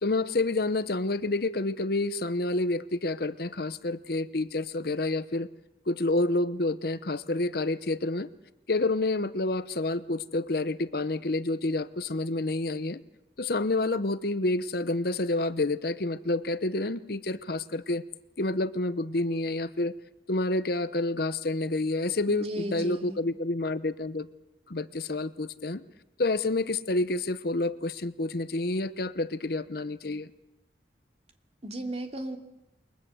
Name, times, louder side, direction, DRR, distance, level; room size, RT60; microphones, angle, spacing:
voice 1, 0.0-5.5 5.9-8.3 8.7-13.0 13.4-18.0 18.4-19.9 20.3-24.3 24.7-25.8 26.2-30.3, left 2 dB, 55° left, 13 dB, 0.9 m, -29 dB
voice 2, 22.3-23.2 31.6-32.4, right 1 dB, 35° right, 3 dB, 2.9 m, -35 dB
29.0 x 22.5 x 7.8 m, 0.92 s
head